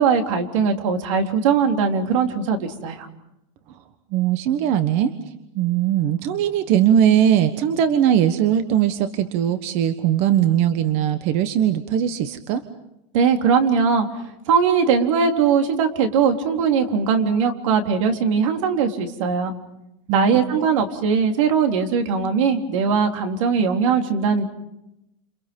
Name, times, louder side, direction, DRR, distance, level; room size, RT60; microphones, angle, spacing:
voice 1, 0.0-3.1 13.1-14.1 14.5-19.5 20.1-24.4, right 6 dB, 75° right, 5 dB, 3.8 m, -20 dB
voice 2, 4.1-5.1 5.5-12.6 20.1-20.4, right 10 dB, 40° right, 10 dB, 1.3 m, -20 dB
29.5 x 28.5 x 5.5 m, 0.85 s
supercardioid pair, 170°, 16 cm